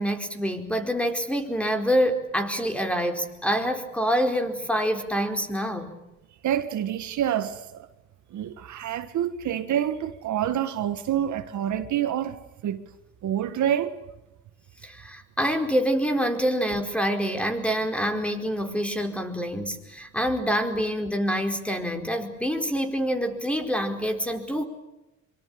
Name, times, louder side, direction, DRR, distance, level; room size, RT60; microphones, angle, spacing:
voice 1, 0.0-5.9 14.8-24.6, equal, 5° left, 4.6 m, -26 dB
voice 2, 6.4-7.9 8.3-12.4 12.6-12.8 13.2-14.0, right 10 dB, 75° right, 1.7 m, -27 dB
24.5 x 24.5 x 8.6 m
cardioid pair, 90°, 30 cm